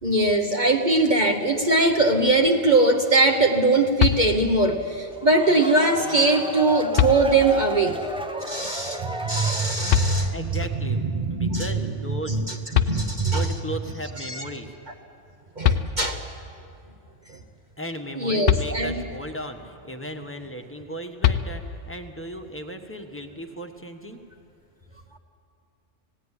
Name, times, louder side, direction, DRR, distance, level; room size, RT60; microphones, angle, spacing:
voice 1, 0.0-8.0 8.4-10.5 11.1-11.7 12.3-12.6 12.9-13.5 14.2-14.4 15.6-16.2 18.2-18.9, right 2 dB, 40° right, 2 dB, 1.1 m, -21 dB
sound 1, 4.0-4.7 6.3-6.4 6.9-7.7 9.9-10.7 12.4-12.5 12.7-13.6 15.3-15.4 15.6-16.4 18.4-19.3 21.2-22.0, left 10 dB, 60° left, 0.9 m, -24 dB
sound 2, 5.1-10.2, right 1 dB, 5° right, 0.7 m, -33 dB
voice 2, 10.3-11.0 11.3-12.4 13.3-14.7 17.8-24.2, right 1 dB, 10° left, 5 dB, 1.2 m, -36 dB
19.0 x 16.0 x 9.9 m, 2.6 s
omnidirectional pair, 1.3 m